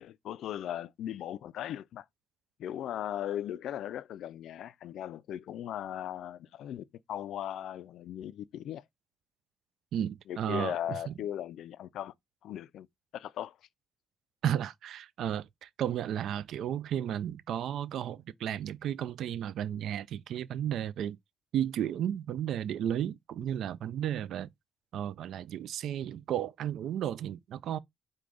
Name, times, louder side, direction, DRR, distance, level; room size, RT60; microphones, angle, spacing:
voice 1, 0.0-2.0 2.6-8.8 10.3-12.1 12.4-12.9 13.1-13.6, left 11 dB, 75° left, 0.3 m, -38 dB
voice 2, 9.9-11.1 14.4-21.2 21.5-24.5 24.9-27.8, right 10 dB, 75° right, 0.3 m, -33 dB
4.7 x 2.2 x 3.8 m
cardioid pair, 90°, 0 cm